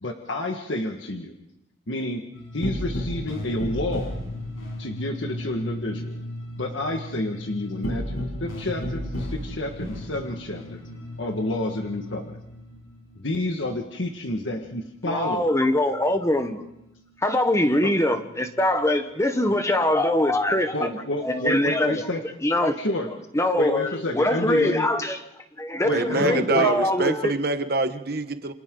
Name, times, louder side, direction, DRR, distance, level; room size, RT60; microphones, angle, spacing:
voice 1, 0.0-1.3 1.9-2.2 2.5-4.1 4.8-6.2 6.6-10.8 11.2-12.4 13.1-15.5 17.8-17.9 20.7-22.2 22.8-23.1 23.6-24.9 25.8-26.7, left 1 dB, 65° left, 1.7 m, -29 dB
sound 1, 2.3-15.3 15.6-17.5 17.9-19.5 20.0-21.8, left 1 dB, 90° left, 6.3 m, -35 dB
voice 2, 15.0-16.6 17.2-20.9 21.2-21.9 22.4-22.8 23.3-25.2 25.6-27.3, left 1 dB, 15° left, 1.1 m, -23 dB
voice 3, 25.9-28.5, right 3 dB, 50° right, 1.2 m, -25 dB
28.5 x 26.5 x 3.9 m
head